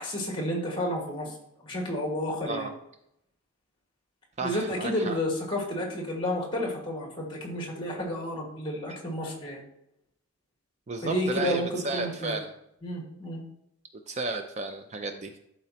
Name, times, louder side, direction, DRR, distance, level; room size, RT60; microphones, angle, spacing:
voice 1, 0.0-1.4 1.6-2.7 4.4-9.6 11.0-12.4 12.8-13.4, left 1 dB, 25° left, -1 dB, 1.6 m, -31 dB
voice 2, 4.4-5.2 10.9-12.5 14.1-15.4, right 3 dB, 30° right, 6 dB, 0.4 m, -33 dB
12.0 x 4.1 x 2.9 m, 0.78 s
head